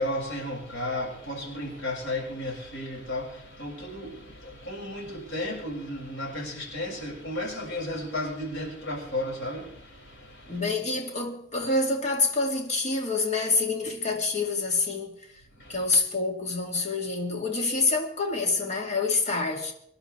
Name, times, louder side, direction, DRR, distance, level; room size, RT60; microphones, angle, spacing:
voice 1, 0.0-10.6 15.6-15.8, left 1 dB, 90° left, 6.3 m, -34 dB
voice 2, 10.5-15.2 15.7-19.7, left 3 dB, 40° left, 2.4 m, -27 dB
24.0 x 11.0 x 3.4 m
head